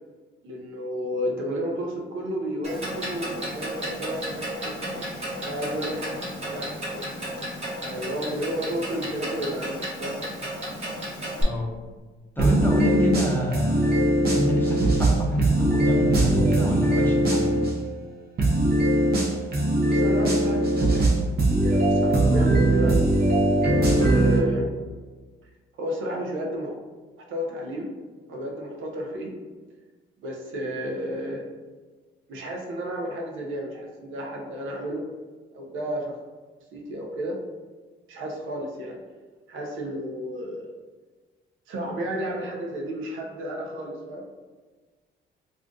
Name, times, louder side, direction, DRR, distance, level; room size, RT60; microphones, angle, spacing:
voice 1, 0.4-4.8 5.4-6.1 6.4-7.1 7.8-10.2 19.8-21.1 21.6-23.0 23.8-24.7 25.8-26.7 27.2-27.9 28.3-29.4 30.2-31.5 32.3-35.0 35.5-36.2 36.7-37.4 38.1-39.0 39.5-40.7 41.7-44.3, equal, 85° right, 0 dB, 0.6 m, -32 dB
Clock, 2.6-11.4, equal, 30° right, 1.1 m, -33 dB
voice 2, 11.4-11.7 12.4-14.0 14.3-17.6, equal, 10° left, -2 dB, 0.7 m, -26 dB
sound 1, 12.4-17.7 18.4-24.4, right 1 dB, 50° right, 0.7 m, -21 dB
2.5 x 2.4 x 3.6 m, 1.4 s
cardioid pair, 90°, 20 cm